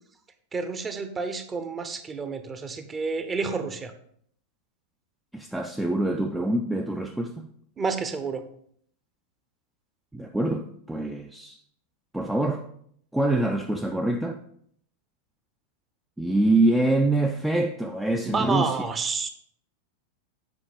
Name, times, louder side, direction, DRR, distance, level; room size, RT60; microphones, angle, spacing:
voice 1, 0.5-3.9 7.8-8.4 18.2-19.3, right 4 dB, 20° right, 0.9 m, -29 dB
voice 2, 5.3-7.5 10.1-11.6 12.1-12.7 13.1-14.4 16.2-18.8, right 2 dB, 5° right, 0.5 m, -25 dB
8.4 x 5.0 x 4.9 m
figure-of-eight pair, 90°, 0 cm